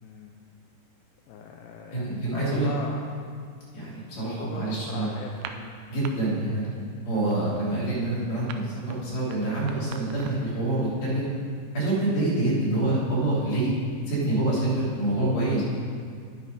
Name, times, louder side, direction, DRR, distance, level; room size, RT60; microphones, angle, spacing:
voice 1, 0.0-0.3 1.3-3.0 4.2-5.8, left 6 dB, 85° left, 1 dB, 2.7 m, -40 dB
voice 2, 1.9-2.7 3.7-5.1 5.9-11.3 11.7-13.7 14.1-15.6, right 2 dB, 45° left, -8 dB, 4.0 m, -26 dB
sound 1, 5.3-6.1 6.4-6.8 7.0-10.6, right 9 dB, 90° right, 2.7 m, -42 dB
9.7 x 8.2 x 5.2 m, 2.2 s
omnidirectional pair, 4.7 m